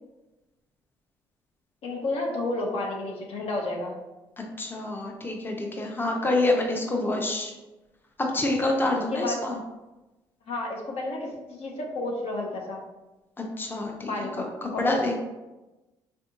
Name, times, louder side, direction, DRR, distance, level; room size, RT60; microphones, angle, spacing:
voice 1, 1.8-3.9 9.1-9.4 10.5-12.8 14.1-14.5 14.7-14.8, left 2 dB, 60° left, -1 dB, 0.7 m, -31 dB
voice 2, 4.6-7.5 8.2-9.6 13.4-15.2, left 2 dB, 20° left, 1 dB, 0.6 m, -27 dB
3.6 x 2.6 x 2.4 m, 1.1 s
hypercardioid pair, 55°, 12 cm